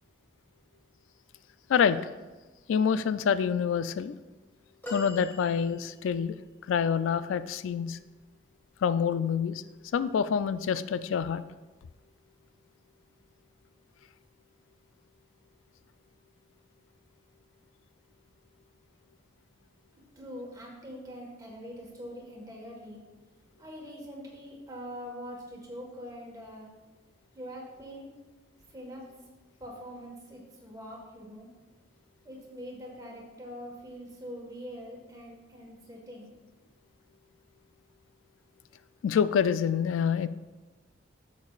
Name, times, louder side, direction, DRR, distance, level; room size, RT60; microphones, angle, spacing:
voice 1, 1.7-2.0 2.7-4.1 4.9-6.3 6.7-8.0 8.8-9.6 9.9-11.4 39.0-40.3, left 7 dB, 85° left, 14 dB, 0.3 m, -26 dB
sound 1, 4.8-6.3 8.6-8.8 10.1-10.2, equal, 10° left, 1.6 m, -42 dB
voice 2, 20.1-23.0 23.6-26.7 27.3-28.1 28.7-29.1 29.6-31.5 32.2-36.3, equal, 20° right, -2 dB, 1.5 m, -43 dB
10.5 x 7.3 x 2.4 m, 1.2 s
head